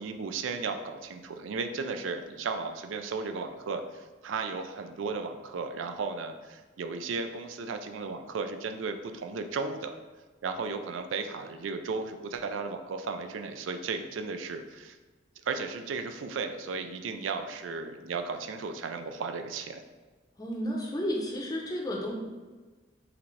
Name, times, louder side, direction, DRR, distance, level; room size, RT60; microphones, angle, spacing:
voice 1, 0.0-9.9 10.4-15.0 15.5-19.8, right 4 dB, 90° right, 7 dB, 0.4 m, -35 dB
voice 2, 20.4-22.1, equal, 20° left, -1 dB, 0.6 m, -32 dB
5.7 x 2.6 x 3.2 m, 1.3 s
head